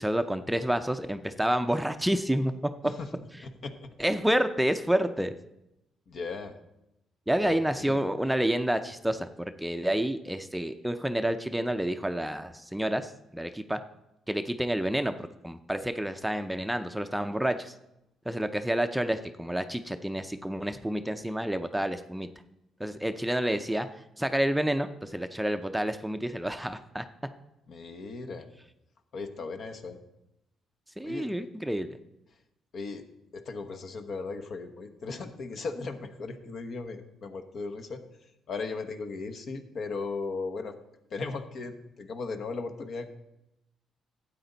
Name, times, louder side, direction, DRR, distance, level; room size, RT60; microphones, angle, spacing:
voice 1, 0.0-2.5 4.0-5.3 7.3-9.3 9.6-13.8 14.3-17.7 18.3-22.3 22.8-23.9 24.2-27.0 31.0-32.0, right 1 dB, 5° right, 8 dB, 0.5 m, -29 dB
voice 2, 3.4-3.9 6.1-6.5 7.4-8.1 27.7-28.5 29.1-30.0 31.0-31.3 32.7-33.0 33.3-38.0 38.5-40.7 41.1-43.1, left 4 dB, 60° left, 7 dB, 1.1 m, -37 dB
12.5 x 8.5 x 4.0 m, 0.88 s
cardioid pair, 90°, 0 cm